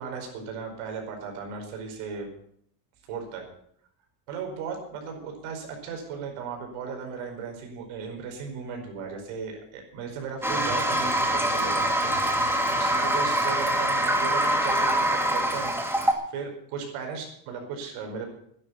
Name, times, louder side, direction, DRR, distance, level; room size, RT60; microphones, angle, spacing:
voice 1, 0.0-2.3 3.1-3.4 4.3-18.3, right 6 dB, 75° right, 2 dB, 5.1 m, -36 dB
Toilet flush, 10.4-16.1, right 1 dB, 5° right, 2.2 m, -24 dB
11.0 x 10.5 x 8.4 m, 0.68 s
cardioid pair, 125°, 50 cm